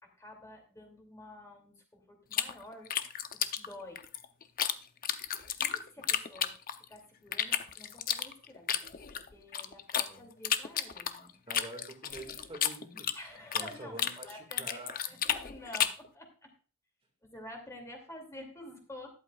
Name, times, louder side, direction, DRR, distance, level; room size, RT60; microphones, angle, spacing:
voice 1, 0.0-2.9 3.3-4.0 5.6-11.3 13.1-14.8 15.1-16.5 17.2-19.1, left 1 dB, 15° left, 1 dB, 2.6 m, -49 dB
sound 1, 2.3-4.7 5.0-6.9 7.3-10.1 10.4-13.7 14.0-16.1, left 9 dB, 40° left, 0.7 m, -32 dB
voice 2, 11.5-13.3 13.5-15.0, right 1 dB, 25° right, 2 dB, 2.1 m, -46 dB
13.0 x 11.5 x 2.4 m, 0.38 s
head